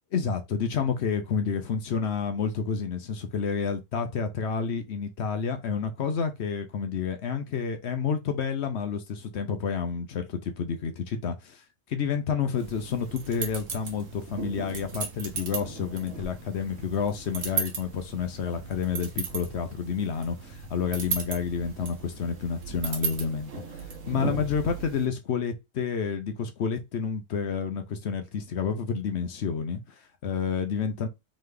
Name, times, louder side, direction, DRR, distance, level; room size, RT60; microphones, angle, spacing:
voice 1, 0.1-11.6 11.9-23.6 24.1-31.1, left 6 dB, 60° left, 0.9 m, -29 dB
sound 1, 12.6-25.0, right 5 dB, 75° right, 1.4 m, -36 dB
3.9 x 3.2 x 3.3 m
omnidirectional pair, 1.3 m